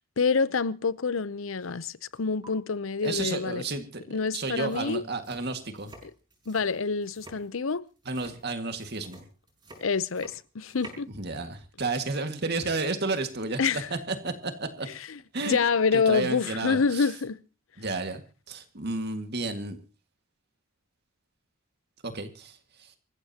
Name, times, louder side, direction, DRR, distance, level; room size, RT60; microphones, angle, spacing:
voice 1, 0.2-3.6 4.1-5.0 6.0-6.1 6.5-7.8 9.8-11.1 13.6-13.9 15.1-15.2 15.4-17.4, left 5 dB, 80° left, 0.7 m, -27 dB
sound 1, 1.6-1.9 2.1-2.5 4.2-4.3 4.5-11.1, right 2 dB, 20° right, 6.3 m, -50 dB
voice 2, 3.0-5.9 8.1-9.2 11.1-13.6 13.9-14.9 15.3-15.6 15.9-17.1 17.8-18.2 18.5-19.8 22.0-22.9, right 3 dB, 55° right, 1.9 m, -32 dB
27.0 x 15.0 x 2.9 m
head